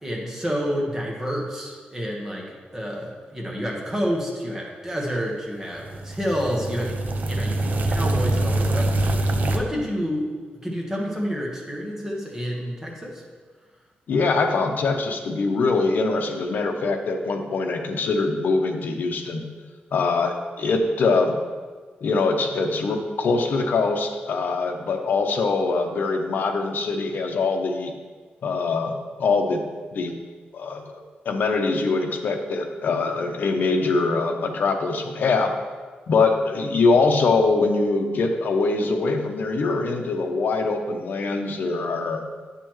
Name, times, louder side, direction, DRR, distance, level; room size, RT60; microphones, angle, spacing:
voice 1, 0.0-7.0 7.3-8.9 9.4-10.3 10.6-13.2, equal, 15° right, -2 dB, 1.4 m, -29 dB
sound 1, 5.7-9.6, right 1 dB, 55° right, 0.6 m, -24 dB
voice 2, 14.1-19.4 19.9-21.3 22.0-27.9 28.4-29.6 29.9-30.1 30.5-30.9 31.2-35.5 36.1-42.2, left 3 dB, 65° left, 3 dB, 0.8 m, -23 dB
9.0 x 6.8 x 3.1 m, 1.5 s
wide cardioid pair, 140°, 3 cm